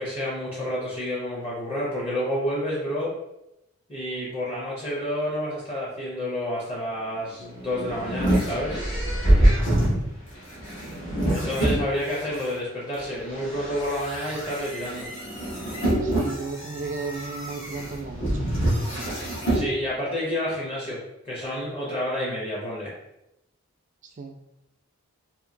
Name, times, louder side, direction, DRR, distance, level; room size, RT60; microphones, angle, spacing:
voice 1, 0.0-3.1 3.9-8.8 11.3-15.1 19.5-21.0 21.2-22.9, equal, 25° left, -6 dB, 0.6 m, -29 dB
sound 1, 7.4-12.4 13.0-19.7, right 1 dB, 55° left, 1.1 m, -25 dB
voice 2, 16.0-18.5 24.0-24.4, right 4 dB, 35° right, 4 dB, 0.3 m, -34 dB
2.8 x 2.6 x 2.5 m, 0.88 s
head